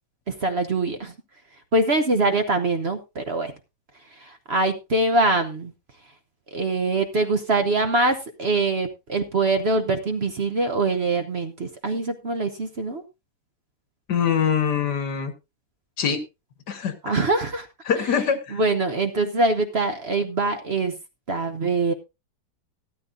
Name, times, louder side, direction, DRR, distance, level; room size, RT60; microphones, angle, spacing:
voice 1, 0.3-1.1 1.7-3.5 4.2-5.7 6.5-13.0 17.0-17.7 18.0-18.1 18.5-20.9 21.3-21.9, right 2 dB, 45° right, 8 dB, 1.0 m, -23 dB
voice 2, 14.1-15.3 16.0-16.2 16.7-16.9 17.9-18.6, left 7 dB, 75° left, 10 dB, 2.0 m, -23 dB
13.5 x 13.0 x 2.6 m, 0.25 s
omnidirectional pair, 1.8 m